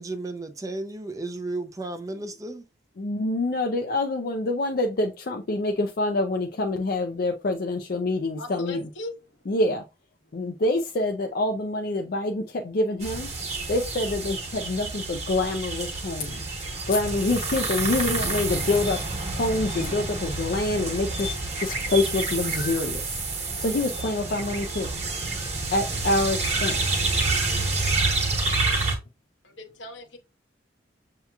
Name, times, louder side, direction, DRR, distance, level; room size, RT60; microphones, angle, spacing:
voice 1, 0.0-2.6, right 2 dB, 20° right, 0.4 m, -33 dB
voice 2, 3.0-8.9 9.5-9.8 10.3-13.3 13.7-19.0 19.3-23.2 23.6-24.9 25.7-26.8, left 2 dB, 50° left, 0.4 m, -26 dB
voice 3, 8.4-9.1 29.4-30.2, left 2 dB, 80° left, 1.1 m, -38 dB
sound 1, 13.0-29.0, right 3 dB, 35° right, 1.1 m, -28 dB
6.9 x 2.9 x 2.3 m
head